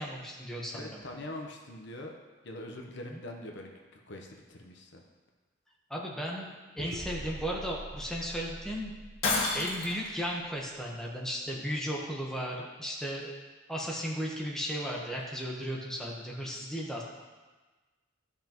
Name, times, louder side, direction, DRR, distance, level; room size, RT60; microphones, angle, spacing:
voice 1, 0.0-1.0 3.1-3.2 5.9-8.9 9.5-13.3 13.7-17.0, equal, 5° left, -3 dB, 1.1 m, -35 dB
voice 2, 0.7-2.1 2.4-5.0 11.5-11.7 16.6-16.7, left 1 dB, 60° left, 2 dB, 0.9 m, -43 dB
sound 1, 6.8-10.9, right 1 dB, 30° right, 0.6 m, -45 dB
Shatter, 9.2-10.1, left 3 dB, 80° left, 1.9 m, -29 dB
13.0 x 5.6 x 3.0 m, 1.3 s
head